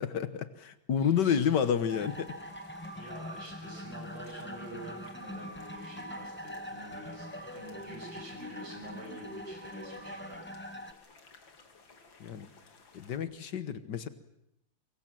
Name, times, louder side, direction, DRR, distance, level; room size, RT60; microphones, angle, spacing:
voice 1, 0.0-2.4 12.2-12.5 12.9-14.1, left 8 dB, 65° left, 12 dB, 1.8 m, -30 dB
voice 2, 1.0-1.4 2.9-10.4, right 1 dB, 80° right, 1 dB, 8.2 m, -47 dB
sound 1, 1.2-13.2, left 4 dB, 90° left, 3.2 m, -58 dB
sound 2, 1.9-10.9, equal, 5° left, 1.0 m, -43 dB
24.5 x 23.0 x 7.6 m, 0.82 s
omnidirectional pair, 2.1 m